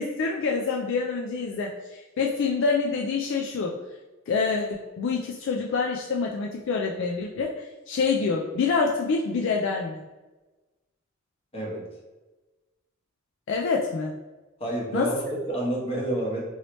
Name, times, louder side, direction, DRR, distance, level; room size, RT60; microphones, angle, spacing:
voice 1, 0.0-3.7 4.3-10.0 13.5-14.1 14.9-15.1, left 4 dB, 65° left, 0 dB, 0.3 m, -26 dB
voice 2, 11.5-11.9 14.6-16.4, right 1 dB, 30° left, -4 dB, 1.0 m, -29 dB
3.1 x 2.8 x 3.0 m, 1.1 s
head